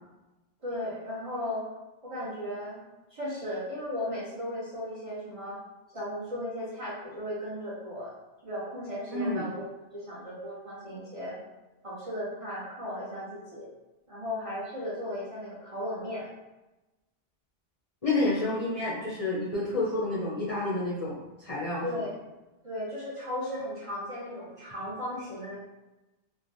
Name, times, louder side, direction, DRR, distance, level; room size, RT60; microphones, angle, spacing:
voice 1, 0.6-1.6 2.0-2.8 3.1-5.6 5.9-8.1 8.4-11.4 11.8-13.7 14.1-16.3 21.8-22.1 22.6-25.6, left 1 dB, 35° right, -8 dB, 0.7 m, -36 dB
voice 2, 9.1-9.4 18.0-21.8, left 2 dB, 40° left, -7 dB, 0.6 m, -29 dB
3.1 x 2.2 x 2.6 m, 1.0 s
omnidirectional pair, 1.1 m